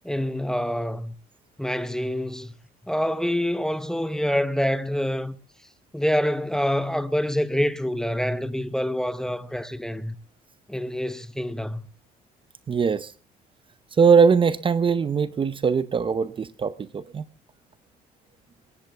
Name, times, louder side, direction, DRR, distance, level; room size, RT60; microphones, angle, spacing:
voice 1, 0.0-1.1 1.6-2.5 2.8-5.4 5.9-10.2 10.7-11.8, equal, 5° left, 0.8 m, -26 dB
voice 2, 12.7-13.1 14.0-17.2, right 6 dB, 30° right, 0.7 m, -21 dB
21.0 x 16.5 x 3.4 m
cardioid pair, 110°, 17 cm